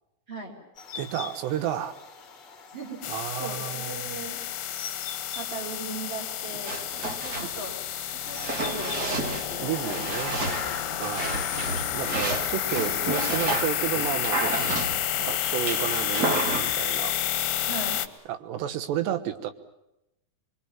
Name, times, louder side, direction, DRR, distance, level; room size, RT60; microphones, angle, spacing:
sound 1, 0.7-17.3, left 6 dB, 40° left, 1.7 m, -43 dB
voice 1, 0.9-2.0 3.1-4.1 7.4-7.5 9.6-10.4 11.0-11.5 11.9-14.7 15.2-17.2 18.3-19.5, right 11 dB, 75° right, 10 dB, 3.4 m, -32 dB
voice 2, 2.7-4.4 5.4-6.8 7.2-7.7 8.1-11.4 17.7-18.0, right 3 dB, 25° right, 0 dB, 4.9 m, -39 dB
sound 2, 3.0-18.1, left 12 dB, 70° left, 2.5 m, -30 dB
sound 3, 6.6-16.7, right 2 dB, 50° right, 1.2 m, -32 dB
25.0 x 23.5 x 7.4 m, 0.89 s
omnidirectional pair, 5.2 m